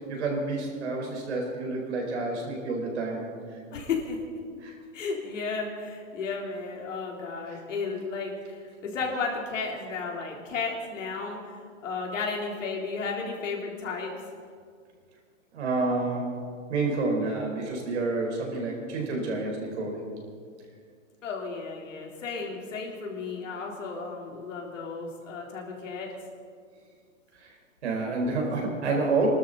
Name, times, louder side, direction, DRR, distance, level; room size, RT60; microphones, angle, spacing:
voice 1, 0.1-3.3 4.6-4.7 7.5-7.6 15.5-16.3 16.7-20.1 27.8-29.3, right 3 dB, 55° right, 0 dB, 4.6 m, -29 dB
voice 2, 3.7-4.2 4.9-11.4 11.8-14.1 21.2-26.1, left 4 dB, 70° left, -1 dB, 3.9 m, -33 dB
25.0 x 13.0 x 4.2 m, 2.1 s
hypercardioid pair, 180°, 39 cm